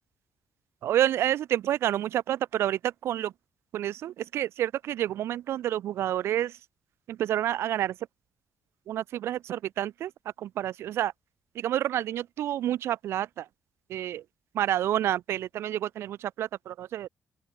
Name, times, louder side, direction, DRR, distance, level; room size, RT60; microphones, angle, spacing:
voice 1, 0.8-3.3 3.7-6.6 7.1-8.0 8.9-11.1 11.5-13.5 13.9-14.2 14.5-17.1, right 12 dB, 65° right, 0.4 m, -29 dB
open air
cardioid pair, 175°, 5 cm